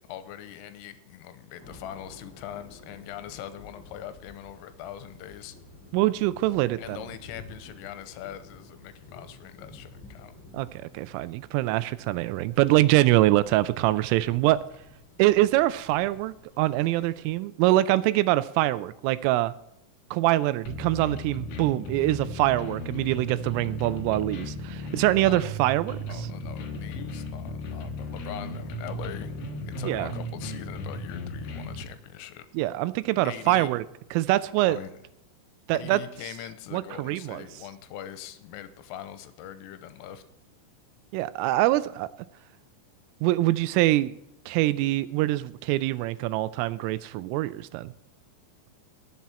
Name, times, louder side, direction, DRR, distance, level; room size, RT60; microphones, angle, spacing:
voice 1, 0.1-5.6 6.8-10.3 24.8-25.4 26.1-29.4 29.7-32.5 33.2-33.7 34.6-35.0 35.7-40.2, left 11 dB, 90° left, 11 dB, 3.4 m, -42 dB
sound 1, 1.6-17.3, left 2 dB, 35° left, 4.8 m, -51 dB
voice 2, 5.9-7.0 10.5-14.6 15.2-19.5 20.1-26.0 29.9-30.1 32.5-33.8 34.1-34.8 35.7-36.0 36.7-37.4 41.1-42.1 43.2-44.1 44.5-47.9, right 16 dB, 85° right, 15 dB, 3.1 m, -24 dB
sound 2, 20.7-31.8, left 1 dB, 65° left, 2.6 m, -36 dB
18.5 x 7.5 x 4.3 m, 0.80 s
omnidirectional pair, 5.9 m